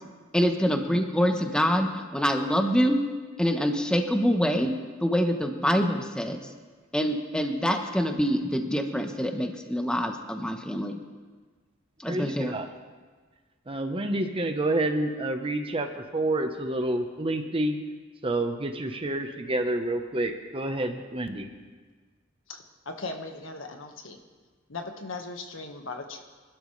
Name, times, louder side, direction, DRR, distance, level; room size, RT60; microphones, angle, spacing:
voice 1, 0.3-3.0 3.4-4.7 5.0-6.4 6.9-11.0 12.0-12.5, equal, 5° left, 4 dB, 1.1 m, -25 dB
voice 2, 12.1-12.7 13.7-17.8 18.2-21.5, right 1 dB, 30° right, 6 dB, 1.1 m, -28 dB
voice 3, 22.5-24.2 24.7-26.2, left 3 dB, 80° left, 4 dB, 1.6 m, -38 dB
26.0 x 12.5 x 3.3 m, 1.4 s
head